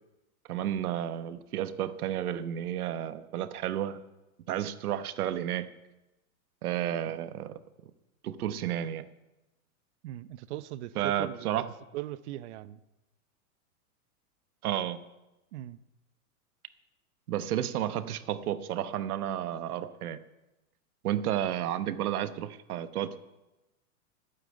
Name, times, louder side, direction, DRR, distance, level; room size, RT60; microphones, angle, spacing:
voice 1, 0.5-4.0 4.5-5.7 6.6-7.5 8.2-9.1 10.9-11.7 14.6-15.0 17.3-20.2 21.0-23.2, right 11 dB, 75° right, 12 dB, 1.1 m, -32 dB
voice 2, 10.0-11.5 11.9-12.8 15.5-15.8, right 14 dB, 50° right, 16 dB, 0.7 m, -39 dB
11.5 x 9.2 x 8.5 m, 1.0 s
supercardioid pair, 150°, 44 cm